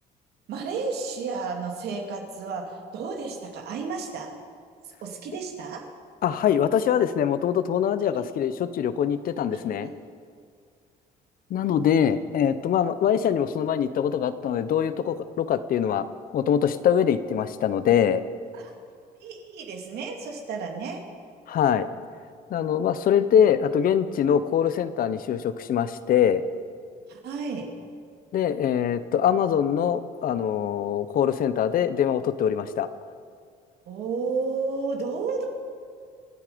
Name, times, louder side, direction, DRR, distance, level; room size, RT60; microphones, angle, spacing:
voice 1, 0.5-4.3 5.0-5.9 8.1-8.2 9.8-9.9 18.5-18.7 19.2-21.0 27.1-27.7 33.9-35.4, right 4 dB, 75° right, 2 dB, 2.5 m, -32 dB
voice 2, 6.2-9.9 11.5-16.1 16.3-18.2 21.5-21.9 22.5-26.4 28.3-32.9, left 9 dB, 60° left, 13 dB, 0.9 m, -23 dB
26.5 x 9.7 x 5.2 m, 2.1 s
cardioid pair, 110°, 17 cm